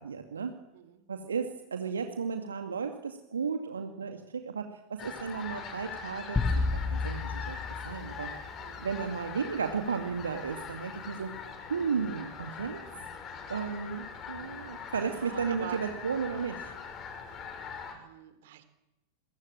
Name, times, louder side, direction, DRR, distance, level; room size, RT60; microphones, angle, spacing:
voice 1, 0.0-0.6 1.1-7.6 7.8-8.3 8.8-11.3 11.7-12.8 13.5-16.7, right 6 dB, 70° right, 5 dB, 2.4 m, -34 dB
voice 2, 0.7-1.0 8.6-8.8 12.9-13.2 15.0-15.8 17.3-17.5 17.9-18.6, right 13 dB, 55° right, 12 dB, 3.5 m, -46 dB
sound 1, 5.0-17.9, left 6 dB, 30° left, 6.7 m, -42 dB
sound 2, 6.4-8.9, left 3 dB, 15° left, 1.8 m, -31 dB
28.5 x 23.0 x 9.0 m, 0.91 s
figure-of-eight pair, 90°, 0 cm